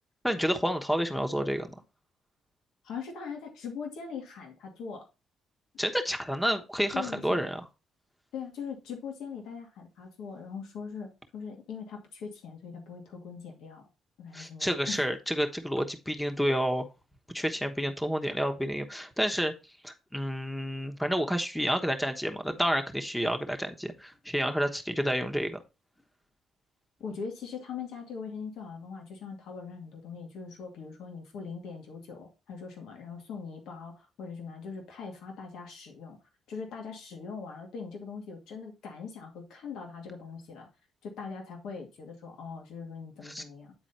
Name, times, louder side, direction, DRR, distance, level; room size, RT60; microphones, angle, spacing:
voice 1, 0.2-1.7 5.8-7.6 14.3-16.9 17.3-19.5 19.8-25.6 43.2-43.4, equal, 5° left, 6 dB, 1.1 m, -29 dB
voice 2, 2.8-5.1 6.9-7.4 8.3-13.9 14.2-15.0 27.0-36.2 36.5-40.7 41.0-43.7, left 5 dB, 85° left, 1 dB, 2.2 m, -41 dB
9.3 x 4.1 x 4.2 m, 0.29 s
cardioid pair, 90°, 0 cm